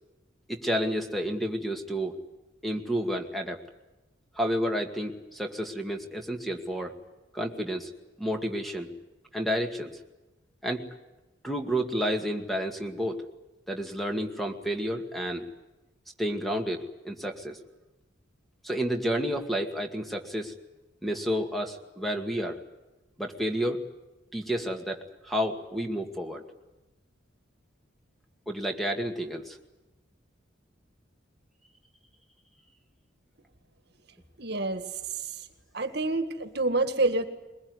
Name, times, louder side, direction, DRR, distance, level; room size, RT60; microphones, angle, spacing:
voice 1, 0.5-2.1 2.6-3.6 4.4-6.9 7.3-7.9 8.2-8.9 9.3-9.9 10.6-10.8 11.4-13.2 13.7-15.5 16.2-17.6 18.6-20.6 21.0-22.6 23.2-23.8 24.3-26.4 28.5-29.6, equal, ahead, 4 dB, 2.1 m, -30 dB
voice 2, 34.4-34.8 35.7-37.3, right 2 dB, 55° right, 9 dB, 1.8 m, -27 dB
22.5 x 21.0 x 9.6 m, 1.1 s
head